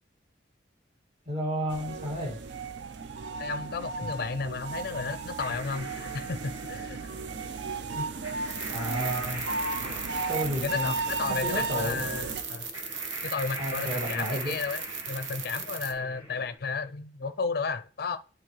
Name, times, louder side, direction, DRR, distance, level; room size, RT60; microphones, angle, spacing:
voice 1, 1.3-2.4 4.0-4.1 8.0-8.1 8.7-9.5 10.3-10.9 11.3-12.1 13.6-14.6, equal, 35° right, 2.2 m, -32 dB
sound 1, 1.7-12.4, right 4 dB, 65° right, 0.5 m, -35 dB
voice 2, 3.4-7.0 10.6-12.7 13.2-18.2, left 4 dB, 50° left, 0.4 m, -33 dB
sound 2, 5.4-16.6, right 1 dB, 15° right, 1.4 m, -43 dB
sound 3, 8.5-15.9, right 6 dB, 85° right, 0.9 m, -38 dB
11.0 x 4.0 x 3.2 m
head